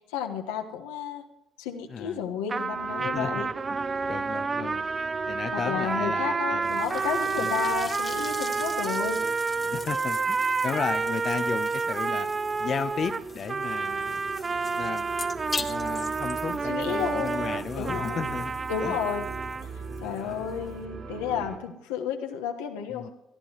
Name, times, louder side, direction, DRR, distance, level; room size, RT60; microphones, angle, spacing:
voice 1, 0.1-1.2 1.6-3.5 5.5-9.2 16.5-18.3 18.7-19.3 20.0-23.1, left 7 dB, 90° left, 4 dB, 1.3 m, -32 dB
voice 2, 1.9-2.2 3.0-3.4 4.1-4.9 5.3-6.7 7.4-7.5 9.6-12.3 12.6-14.2 14.8-15.1 15.6-18.5 18.8-19.0 20.0-20.5 22.9-23.1, left 6 dB, 50° left, 10 dB, 0.8 m, -34 dB
sound 1, 2.5-19.7, right 4 dB, 35° right, 0.5 m, -29 dB
sound 2, 2.7-21.6, right 3 dB, 50° right, 6.0 m, -42 dB
sound 3, 6.6-20.9, left 4 dB, 30° left, 1.4 m, -42 dB
20.0 x 13.0 x 3.0 m, 0.88 s
supercardioid pair, 65°, 0 cm